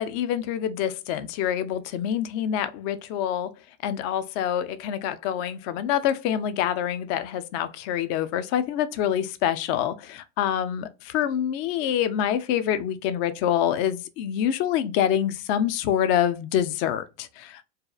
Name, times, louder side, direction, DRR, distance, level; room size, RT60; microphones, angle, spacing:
voice 1, 0.0-3.5 3.8-17.6, left 10 dB, 45° left, 0.4 m, -26 dB
2.7 x 2.3 x 2.3 m
hypercardioid pair, 110°, 35 cm